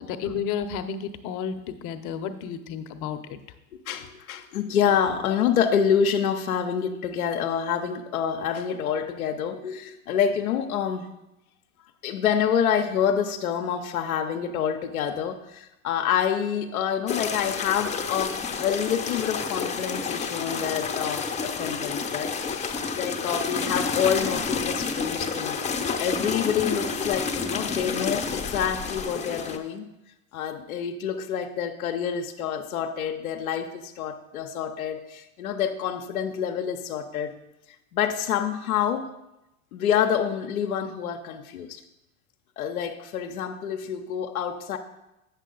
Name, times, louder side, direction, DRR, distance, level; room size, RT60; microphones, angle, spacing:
voice 1, 0.0-3.2, left 7 dB, 45° left, 9 dB, 0.8 m, -32 dB
voice 2, 3.9-11.1 12.0-25.6 26.0-29.9 30.3-37.3 37.9-39.1 39.7-41.8 42.6-44.8, left 8 dB, 85° left, 4 dB, 0.7 m, -27 dB
sound 1, 17.1-29.6, left 5 dB, 15° left, 0.7 m, -29 dB
8.1 x 6.9 x 3.8 m, 0.93 s
hypercardioid pair, 95°, 42 cm